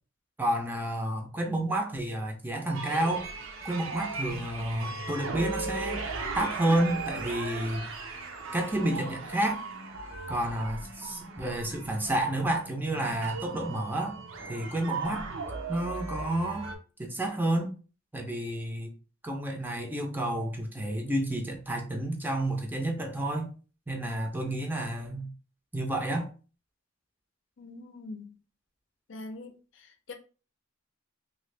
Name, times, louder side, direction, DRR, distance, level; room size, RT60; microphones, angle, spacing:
voice 1, 0.4-3.3 3.6-6.1 6.4-7.9 8.5-9.6 10.3-14.2 14.5-15.3 15.7-16.7 17.0-17.7 18.1-18.9 19.2-23.5 23.9-25.3 25.7-26.3, right 1 dB, 10° right, 0.5 m, -30 dB
sound 1, 2.7-16.8, right 3 dB, 85° right, 0.6 m, -38 dB
voice 2, 27.6-28.3 29.1-29.5 30.1-30.2, left 2 dB, 65° left, 0.6 m, -42 dB
2.8 x 2.6 x 3.3 m
head